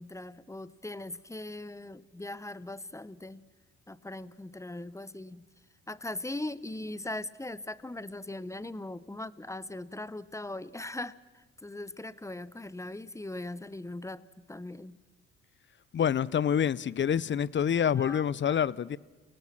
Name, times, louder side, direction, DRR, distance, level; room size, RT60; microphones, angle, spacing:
voice 1, 0.0-3.4 3.9-5.4 5.9-15.0 17.9-18.2, left 2 dB, 10° left, 1.0 m, -40 dB
voice 2, 15.9-19.0, left 8 dB, 40° left, 0.7 m, -27 dB
29.5 x 19.0 x 6.1 m
hypercardioid pair, 55°, 29 cm